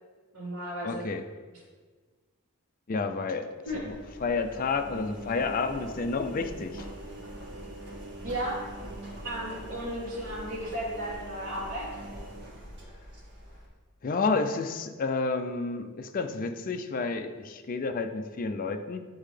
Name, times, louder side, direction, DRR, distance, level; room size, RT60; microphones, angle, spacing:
voice 1, 0.3-1.0 3.7-3.8 8.2-8.6 9.2-11.9, equal, 90° right, -10 dB, 1.8 m, -34 dB
voice 2, 0.8-1.2 2.9-3.5 3.7-4.0 4.2-6.9 14.0-19.0, left 4 dB, 40° left, 7 dB, 0.4 m, -30 dB
Engine, 3.7-13.7, right 1 dB, 55° right, 1.7 m, -43 dB
9.5 x 3.7 x 3.3 m, 1.4 s
head